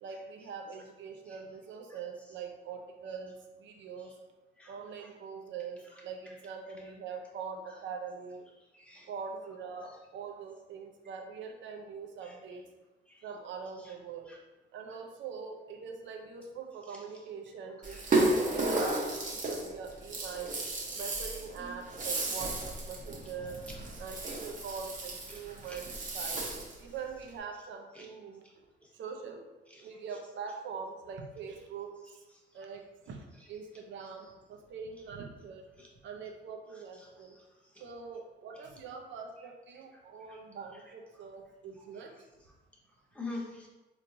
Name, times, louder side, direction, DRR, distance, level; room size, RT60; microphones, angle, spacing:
voice 1, 0.0-4.1 4.7-8.4 9.1-12.6 13.2-14.3 14.7-20.6 20.9-23.6 24.0-26.4 26.8-28.4 28.9-29.4 29.8-32.1 32.5-35.6 36.0-37.4 37.8-42.1, right 5 dB, 70° right, 3 dB, 0.6 m, -43 dB
voice 2, 8.7-9.1 12.2-12.3 13.1-13.2 14.3-14.4 17.9-18.0 25.3-25.4 25.7-25.8 27.9-28.1 35.8-35.9 43.1-43.7, left 3 dB, 5° left, -3 dB, 1.0 m, -43 dB
Rattle (instrument), 17.8-26.8, right 2 dB, 40° right, 0.8 m, -33 dB
4.1 x 3.1 x 2.6 m, 1.1 s
cardioid pair, 90°, 20 cm